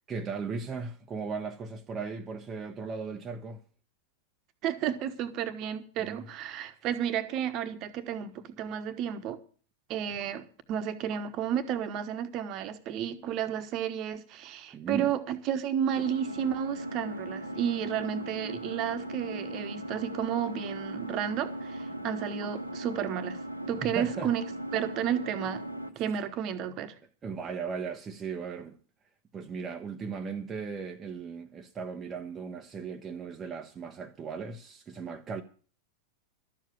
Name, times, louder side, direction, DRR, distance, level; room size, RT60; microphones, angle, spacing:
voice 1, 0.1-3.6 6.0-6.3 14.7-15.1 23.8-24.3 27.2-28.8 29.3-35.4, right 5 dB, 20° right, 1.0 m, -37 dB
voice 2, 4.6-9.4 9.9-23.4 23.7-24.4 24.7-25.6 25.9-26.9, right 9 dB, 35° right, 1.3 m, -32 dB
Engine, 15.9-25.9, right 1 dB, 85° right, 1.3 m, -38 dB
12.5 x 7.6 x 8.3 m
figure-of-eight pair, 90°, 0 cm